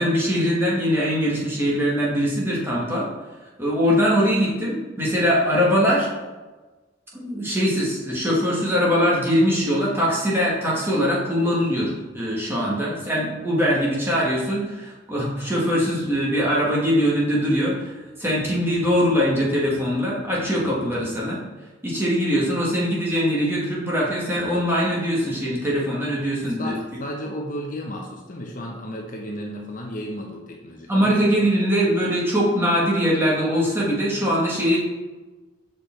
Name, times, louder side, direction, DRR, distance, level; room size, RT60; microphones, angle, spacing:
voice 1, 0.0-3.1 3.6-6.1 7.1-21.4 21.8-26.7 30.9-34.8, equal, 10° right, -6 dB, 1.9 m, -22 dB
voice 2, 26.6-31.1, equal, 45° left, 0 dB, 0.9 m, -33 dB
6.7 x 5.0 x 4.5 m, 1.2 s
head